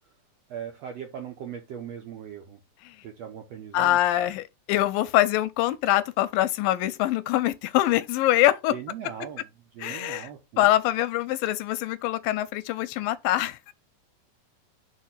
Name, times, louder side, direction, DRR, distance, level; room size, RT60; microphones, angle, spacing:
voice 1, 0.5-2.6 3.0-4.0 8.7-9.5 9.7-10.7, right 8 dB, 70° right, 1.6 m, -39 dB
voice 2, 3.7-8.7 9.8-10.3 10.6-13.7, left 14 dB, 85° left, 2.3 m, -24 dB
4.8 x 4.6 x 5.6 m
omnidirectional pair, 4.0 m